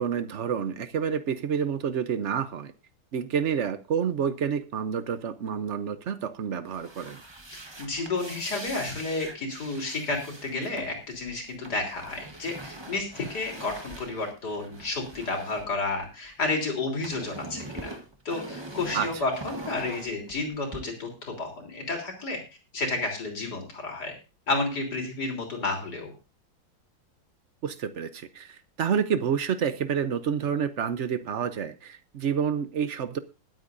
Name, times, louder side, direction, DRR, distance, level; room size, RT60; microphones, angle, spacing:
voice 1, 0.0-2.7 3.1-7.2 18.9-19.1 27.6-33.2, right 7 dB, 65° right, 0.7 m, -29 dB
sound 1, 6.6-16.4 16.7-20.8, right 1 dB, 15° right, 1.1 m, -43 dB
voice 2, 7.8-17.9 18.3-22.4 22.7-24.1 24.5-26.1, left 3 dB, 55° left, 4.1 m, -31 dB
21.0 x 9.0 x 2.6 m
omnidirectional pair, 2.1 m